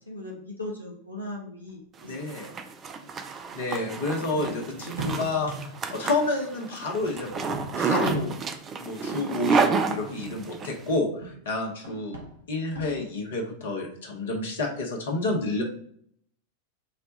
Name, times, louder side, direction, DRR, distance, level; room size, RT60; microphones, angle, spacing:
voice 1, 0.1-2.2 2.9-3.2 4.2-4.7, left 2 dB, 90° left, -3 dB, 0.6 m, -39 dB
sound 1, 1.7-1.8 2.3-2.4 3.4-5.9 6.9-8.7 9.8-11.5 11.7-13.2, right 2 dB, 80° right, 1.1 m, -39 dB
voice 2, 2.0-2.5 3.5-8.3 8.8-12.2 12.5-15.6, left 2 dB, 60° left, 1 dB, 0.9 m, -29 dB
Zipper (clothing), 2.0-10.7, right 5 dB, 25° right, 0.4 m, -30 dB
4.1 x 2.3 x 3.9 m, 0.63 s
figure-of-eight pair, 90°, 0 cm